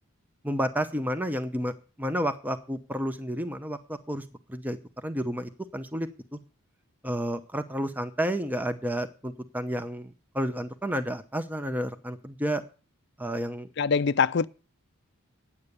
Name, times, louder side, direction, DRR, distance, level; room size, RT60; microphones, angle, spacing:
voice 1, 0.4-1.7 2.0-4.2 4.5-4.8 5.0-6.4 7.0-12.6 13.2-13.7, equal, 10° right, 0.7 m, -31 dB
voice 2, 13.8-14.5, left 5 dB, 50° left, 0.5 m, -23 dB
9.7 x 8.8 x 6.7 m
head